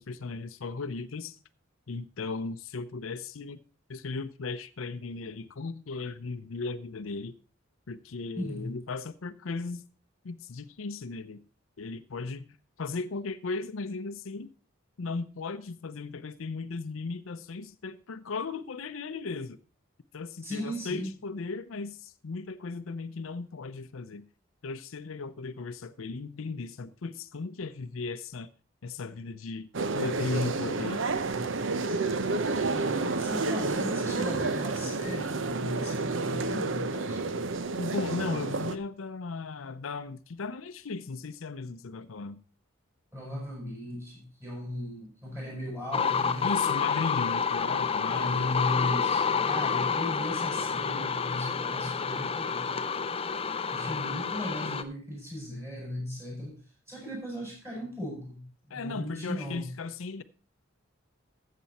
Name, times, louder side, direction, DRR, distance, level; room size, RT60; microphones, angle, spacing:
voice 1, 0.0-1.4 1.9-3.6 3.9-7.3 7.9-9.8 10.2-11.4 11.8-12.5 12.8-14.5 15.0-19.6 20.1-24.2 24.6-28.5 28.8-29.7 29.9-31.0 37.8-42.4 46.4-48.5 58.7-60.2, left 4 dB, 80° left, 0.6 m, -36 dB
voice 2, 8.4-8.8 20.4-21.1 32.6-37.4 43.1-46.5 48.1-53.0 53.7-56.5 56.9-59.7, left 1 dB, 15° right, 6.9 m, -37 dB
sound 1, 29.7-38.8, right 3 dB, 65° right, 0.7 m, -30 dB
sound 2, 45.9-54.8, left 6 dB, 30° left, 0.6 m, -29 dB
13.5 x 7.6 x 4.2 m
head